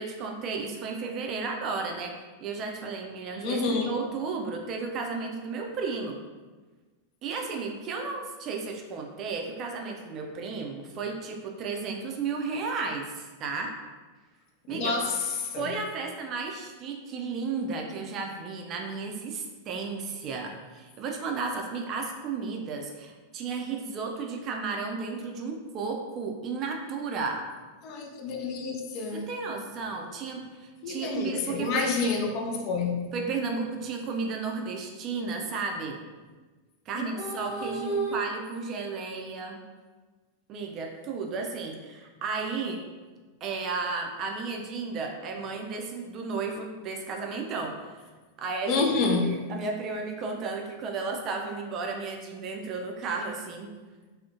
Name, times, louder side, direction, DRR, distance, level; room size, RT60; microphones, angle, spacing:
voice 1, 0.0-6.2 7.2-13.7 14.7-15.0 15.6-27.4 29.1-32.1 33.1-36.0 36.9-39.6 40.5-42.8 43.4-48.1 48.4-48.8 49.2-53.7, right 4 dB, 35° right, 2 dB, 0.3 m, -33 dB
voice 2, 3.4-3.9 14.7-15.8 27.8-29.3 30.8-33.0 36.9-38.2 48.7-49.4, left 3 dB, 40° left, 2 dB, 0.3 m, -29 dB
2.4 x 2.0 x 2.6 m, 1.3 s
figure-of-eight pair, 90°, 0 cm